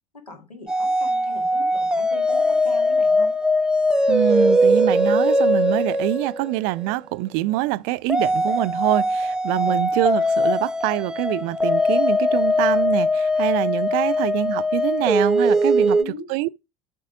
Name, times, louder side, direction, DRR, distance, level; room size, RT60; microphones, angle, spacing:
voice 1, 0.1-3.3 9.6-9.8 15.9-16.3, left 2 dB, 85° left, 1.6 m, -40 dB
sound 1, 0.7-6.9 8.1-16.0, equal, 5° right, 0.7 m, -20 dB
voice 2, 4.1-16.0 16.3-16.6, right 18 dB, 50° right, 0.4 m, -25 dB
8.1 x 5.3 x 4.9 m
figure-of-eight pair, 65°, 19 cm